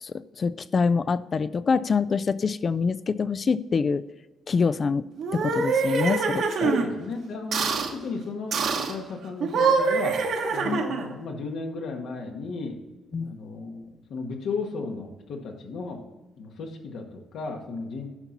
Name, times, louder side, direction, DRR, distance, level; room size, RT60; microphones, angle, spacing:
voice 1, 0.0-4.0 4.5-5.1 5.3-6.7 10.6-10.8 13.1-13.4, left 5 dB, 40° left, 17 dB, 0.4 m, -25 dB
sound 1, 5.2-6.9 7.5-7.9 8.5-8.9 9.4-11.1, right 5 dB, 70° right, 1.3 m, -25 dB
voice 2, 6.6-7.7 7.9-8.6 8.9-10.2 10.5-12.8 13.2-16.0 16.4-18.1, left 4 dB, 75° left, 2 dB, 1.6 m, -34 dB
9.7 x 5.9 x 4.1 m, 1.2 s
cardioid pair, 90°, 0 cm